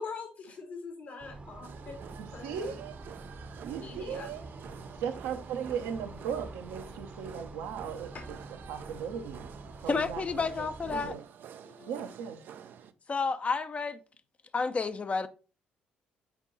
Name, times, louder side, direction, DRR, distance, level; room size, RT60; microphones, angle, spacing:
voice 1, 0.0-1.9 2.3-2.8 3.8-4.3 8.1-8.2, left 4 dB, 60° left, 1.6 m, -42 dB
sound 1, 1.2-11.2, right 2 dB, 30° right, 0.9 m, -46 dB
sound 2, 1.6-12.9, right 8 dB, 50° right, 0.5 m, -49 dB
voice 2, 2.2-2.9 3.6-4.5 5.0-8.4 8.7-9.5 9.8-11.2 11.9-12.4, right 7 dB, 65° right, 0.9 m, -37 dB
voice 3, 9.9-11.1 11.7-11.9 13.1-14.0 14.5-15.3, left 4 dB, 30° left, 0.7 m, -31 dB
5.9 x 4.4 x 4.0 m
figure-of-eight pair, 45°, 4 cm